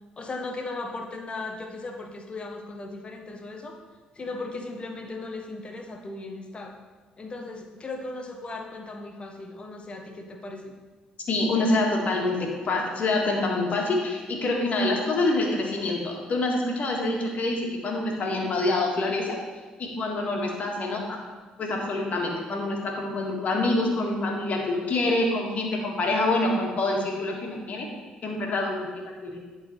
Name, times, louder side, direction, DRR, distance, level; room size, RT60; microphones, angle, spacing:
voice 1, 0.2-3.8 4.1-6.8 7.2-10.7, left 2 dB, 35° left, 3 dB, 1.0 m, -37 dB
voice 2, 11.3-19.4 19.8-21.2 21.6-27.9 28.2-29.4, left 2 dB, 55° left, 0 dB, 1.8 m, -26 dB
10.5 x 4.0 x 4.3 m, 1.3 s
supercardioid pair, 65°, 3 cm